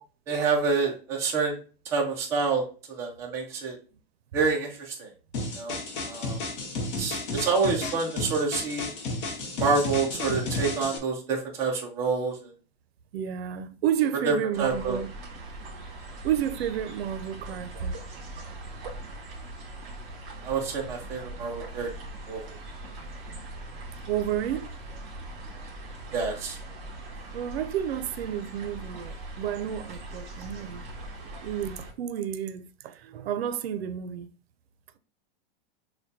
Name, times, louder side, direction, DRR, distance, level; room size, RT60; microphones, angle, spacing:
voice 1, 0.3-1.6 1.9-3.8 4.3-5.1 5.6-6.4 7.0-8.9 9.6-12.5 14.3-15.0 20.4-21.9 22.3-22.4 26.1-26.6, right 4 dB, 10° right, 0.4 m, -27 dB
sound 1, 5.3-11.0, left 2 dB, 30° left, 0.6 m, -32 dB
voice 2, 13.1-15.1 16.2-18.0 24.1-24.7 27.3-30.9 31.2-34.3, right 10 dB, 80° right, 0.6 m, -31 dB
sound 2, 14.5-31.9, right 2 dB, 45° right, 1.7 m, -41 dB
6.6 x 2.2 x 2.6 m
supercardioid pair, 170°, 30 cm